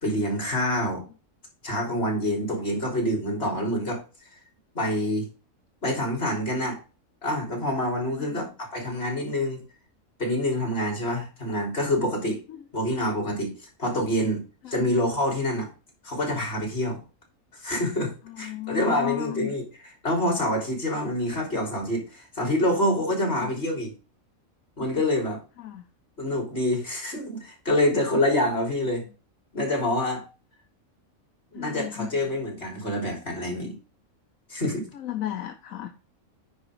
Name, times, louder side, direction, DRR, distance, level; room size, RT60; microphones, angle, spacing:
voice 1, 0.0-1.0 1.6-4.0 4.7-5.3 5.8-6.8 7.2-9.6 10.2-12.4 12.7-13.5 13.8-15.7 16.0-17.0 17.6-19.6 20.0-23.9 24.8-25.4 26.2-29.0 29.5-30.2 31.5-33.7 34.5-34.9, left 1 dB, 45° left, 0 dB, 3.9 m, -26 dB
voice 2, 8.1-8.4 12.5-12.6 14.6-14.8 18.3-19.5 23.3-23.5 25.6-25.8 31.5-32.2 34.9-35.9, left 12 dB, 75° left, 6 dB, 1.2 m, -34 dB
9.6 x 5.1 x 4.9 m, 0.33 s
omnidirectional pair, 1.4 m